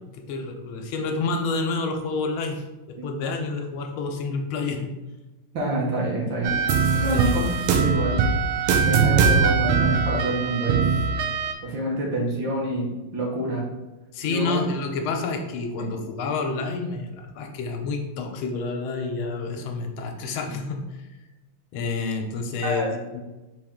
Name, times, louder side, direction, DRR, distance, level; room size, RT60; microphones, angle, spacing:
voice 1, 0.1-5.0 7.1-7.3 14.1-21.1 21.7-23.2, left 3 dB, 80° left, 3 dB, 1.5 m, -29 dB
voice 2, 5.5-6.5 7.0-8.3 8.9-11.0 11.6-13.7 14.2-14.6 15.8-15.9 22.6-22.9, right 1 dB, 70° right, -3 dB, 1.7 m, -27 dB
sound 1, 6.4-11.5, right 5 dB, 85° right, 1.4 m, -21 dB
4.5 x 3.0 x 3.6 m, 1.1 s
omnidirectional pair, 2.3 m